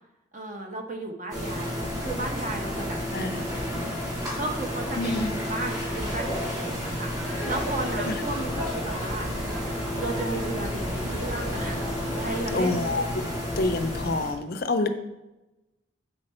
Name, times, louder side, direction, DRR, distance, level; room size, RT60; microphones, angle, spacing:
voice 1, 0.3-4.0 4.4-9.3 10.0-12.9, right 2 dB, 40° right, 2 dB, 0.9 m, -35 dB
sound 1, 1.3-14.3, left 1 dB, 20° right, 2.4 m, -31 dB
voice 2, 5.0-5.4 8.1-8.2 12.5-13.0 13.6-14.9, left 2 dB, 50° left, 7 dB, 0.5 m, -27 dB
Laughter, 7.2-12.3, equal, 90° right, 1.9 m, -36 dB
7.6 x 4.6 x 4.3 m, 1.0 s
head